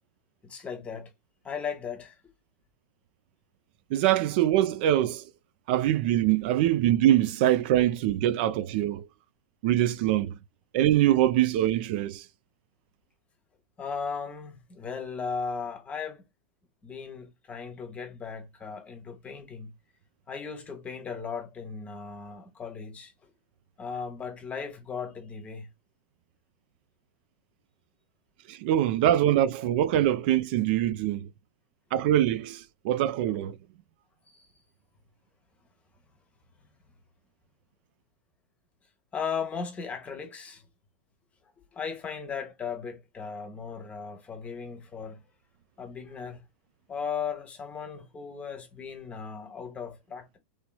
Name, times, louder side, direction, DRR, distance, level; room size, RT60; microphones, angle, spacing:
voice 1, 0.4-1.1 1.4-2.1 13.8-16.2 16.8-19.7 20.3-23.3 23.8-25.7 34.3-34.4 39.1-40.7 41.6-45.2 45.8-46.5 46.9-50.4, left 6 dB, 20° left, 1.0 m, -37 dB
voice 2, 3.9-5.3 5.7-9.1 9.6-10.4 10.7-12.3 28.5-31.3 31.9-33.6, right 12 dB, 55° right, 0.3 m, -24 dB
3.0 x 2.9 x 2.2 m
hypercardioid pair, 125°, 6 cm